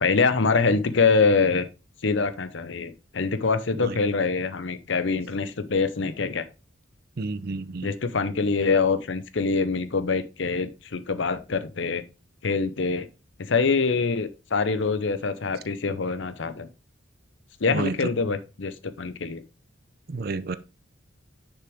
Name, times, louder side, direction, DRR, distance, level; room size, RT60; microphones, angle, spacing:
voice 1, 0.0-1.7 2.0-6.4 7.8-12.0 12.4-13.1 13.4-16.7 17.6-19.4, left 4 dB, 65° left, 0.7 m, -24 dB
voice 2, 7.2-7.9 17.7-17.9 20.1-20.6, right 3 dB, 50° right, 0.5 m, -30 dB
6.6 x 6.0 x 3.5 m
head